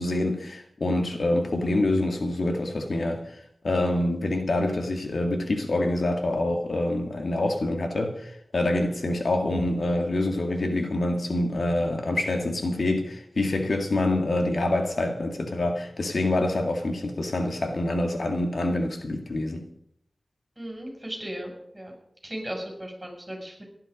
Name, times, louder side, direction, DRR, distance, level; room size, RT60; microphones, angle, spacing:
voice 1, 0.0-19.7, left 2 dB, 70° left, 1.9 m, -26 dB
voice 2, 20.6-22.0 22.2-23.6, right 1 dB, 15° right, 6.8 m, -36 dB
17.0 x 11.5 x 5.2 m
wide cardioid pair, 75°, 0 cm